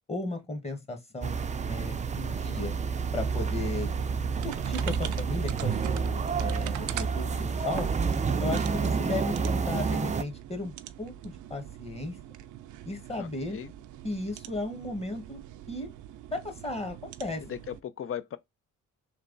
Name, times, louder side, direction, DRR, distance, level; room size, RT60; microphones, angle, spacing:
voice 1, 0.1-1.3 1.7-2.7 3.1-3.9 4.4-7.9 8.4-10.7 11.0-12.2 12.8-13.6 14.0-15.4 15.7-15.9 16.3-17.4, left 2 dB, 20° left, 1.4 m, -35 dB
sound 1, 1.2-10.2, right 5 dB, 25° right, 0.5 m, -29 dB
sound 2, 2.9-17.8, right 12 dB, 75° right, 0.5 m, -43 dB
voice 2, 13.2-13.7 17.4-18.4, left 9 dB, 45° left, 0.6 m, -38 dB
3.4 x 2.9 x 3.9 m
cardioid pair, 90°, 30 cm